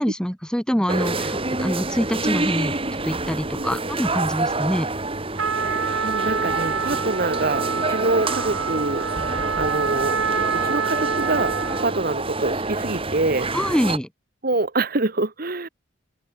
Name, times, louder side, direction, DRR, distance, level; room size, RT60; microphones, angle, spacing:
voice 1, 0.0-2.7 3.0-4.9 13.5-14.1, equal, 5° left, 1.2 m, -25 dB
sound 1, 0.9-14.0, right 2 dB, 25° right, 2.9 m, -27 dB
Trumpet, 5.4-11.9, right 5 dB, 75° right, 1.5 m, -26 dB
voice 2, 5.6-9.1 9.6-11.5 11.8-13.5 14.4-15.7, right 2 dB, 45° right, 1.3 m, -25 dB
open air
head